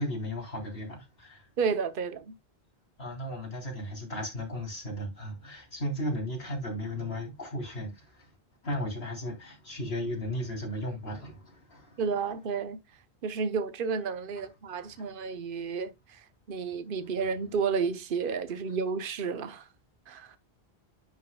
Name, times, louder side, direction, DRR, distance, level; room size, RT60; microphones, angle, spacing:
voice 1, 0.0-1.5 3.0-8.4 8.6-12.0 14.4-14.5 14.8-15.1, equal, 75° left, 3.7 m, -35 dB
voice 2, 1.6-2.3 12.0-12.8 13.2-19.7 20.1-20.4, right 5 dB, 60° right, 1.1 m, -31 dB
10.5 x 6.3 x 2.2 m
omnidirectional pair, 1.0 m